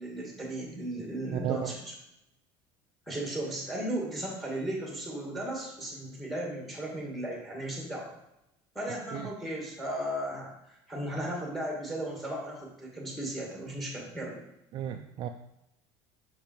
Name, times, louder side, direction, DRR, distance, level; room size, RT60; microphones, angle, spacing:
voice 1, 0.0-1.9 3.1-8.1 8.8-10.5 10.9-14.4, right 1 dB, ahead, -2 dB, 1.9 m, -35 dB
voice 2, 1.3-1.7 9.1-9.3 14.7-15.3, right 11 dB, 40° right, 6 dB, 0.4 m, -34 dB
5.8 x 5.3 x 4.5 m, 0.85 s
cardioid pair, 150°, 11 cm